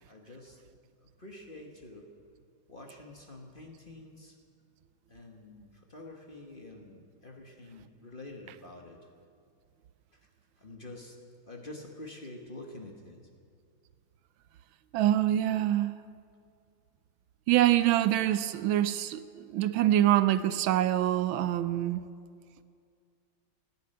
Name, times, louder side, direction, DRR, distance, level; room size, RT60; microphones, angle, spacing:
voice 1, 0.1-0.6 1.0-2.1 2.7-4.4 5.1-9.0 10.1-10.2 10.6-11.2 11.4-13.2, left 2 dB, 30° left, 1 dB, 1.3 m, -47 dB
voice 2, 14.9-15.9 17.5-22.1, right 12 dB, 80° right, 13 dB, 1.3 m, -25 dB
16.0 x 10.5 x 8.9 m, 2.3 s
omnidirectional pair, 2.3 m